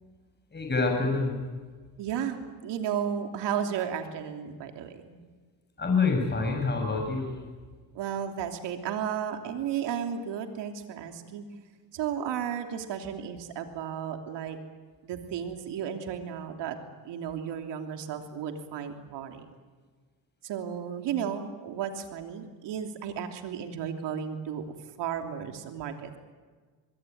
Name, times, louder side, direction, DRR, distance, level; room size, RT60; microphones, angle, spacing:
voice 1, 0.5-1.4 5.8-7.4, left 4 dB, 25° left, 3 dB, 6.8 m, -26 dB
voice 2, 2.0-5.2 7.9-11.4 11.9-14.6 15.0-16.8 17.0-19.4 20.4-24.6 25.0-26.2, right 8 dB, 85° right, 5 dB, 3.2 m, -34 dB
25.0 x 22.0 x 9.4 m, 1.5 s
cardioid pair, 95°, 41 cm